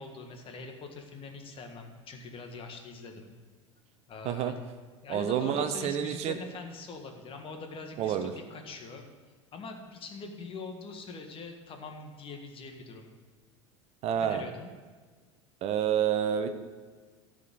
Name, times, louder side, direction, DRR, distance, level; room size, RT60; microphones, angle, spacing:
voice 1, 0.0-3.3 4.1-4.6 5.0-9.0 9.5-13.1 14.2-14.7, left 3 dB, 35° left, 4 dB, 1.7 m, -43 dB
voice 2, 5.1-6.4 8.0-8.3 14.0-14.4 15.6-16.5, right 9 dB, 45° right, 9 dB, 0.8 m, -28 dB
13.0 x 5.2 x 7.6 m, 1.4 s
figure-of-eight pair, 80°, 16 cm